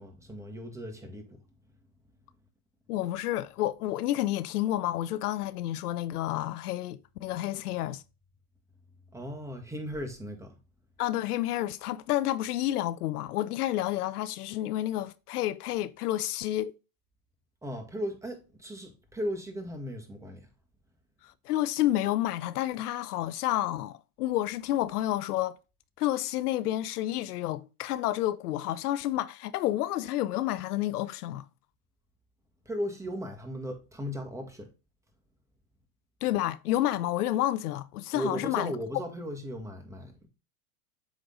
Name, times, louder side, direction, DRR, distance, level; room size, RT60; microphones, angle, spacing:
voice 1, 0.0-1.4 9.1-10.6 17.6-20.4 32.7-34.7 38.1-40.3, equal, 5° right, 1.7 m, -37 dB
voice 2, 2.9-8.0 11.0-16.7 21.2-25.6 26.0-31.4 36.2-38.7, left 14 dB, 80° left, 0.6 m, -30 dB
8.0 x 3.7 x 3.8 m
hypercardioid pair, 100°, 45 cm